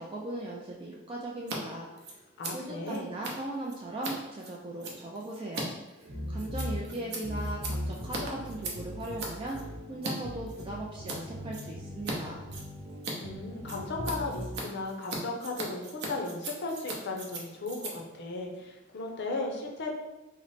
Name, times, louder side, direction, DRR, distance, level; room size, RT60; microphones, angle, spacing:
voice 1, 0.0-2.2 2.5-12.5, right 1 dB, 25° right, -2 dB, 0.3 m, -39 dB
Scissors, 1.4-1.6 1.8-10.1 10.5-11.2 11.5-12.2 12.4-19.2, right 2 dB, 55° right, 0.7 m, -40 dB
voice 2, 2.4-3.1 13.2-19.9, left 3 dB, 60° left, 1 dB, 0.5 m, -36 dB
sound 1, 6.0-14.6, left 1 dB, 75° right, 1.0 m, -39 dB
3.1 x 2.0 x 4.0 m, 1.1 s
head